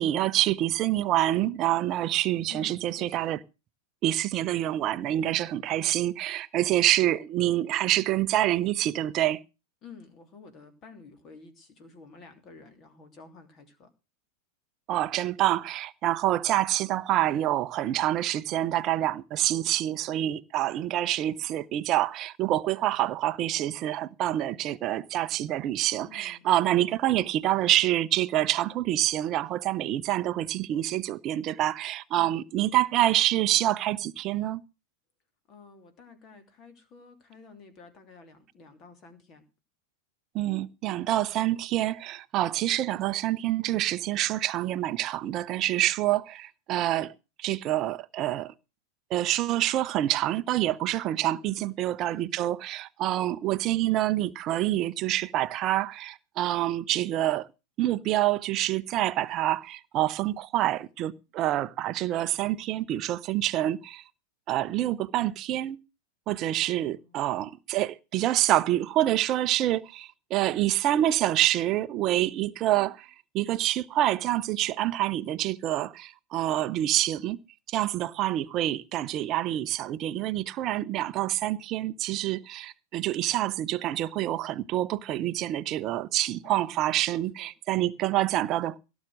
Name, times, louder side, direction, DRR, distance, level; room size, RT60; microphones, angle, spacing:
voice 1, 0.0-3.4 4.0-9.4 14.9-34.6 40.3-47.1 47.4-48.5 49.1-57.5 57.8-64.0 64.5-65.8 66.3-73.1 73.3-77.4 77.7-88.8, right 14 dB, 35° right, 0.8 m, -27 dB
voice 2, 2.5-3.4 9.8-13.9 26.0-26.5 32.1-32.4 35.5-39.4 51.4-52.6 66.6-67.3 86.4-87.5, left 4 dB, 30° left, 3.1 m, -51 dB
17.0 x 7.3 x 6.4 m
figure-of-eight pair, 90°, 0 cm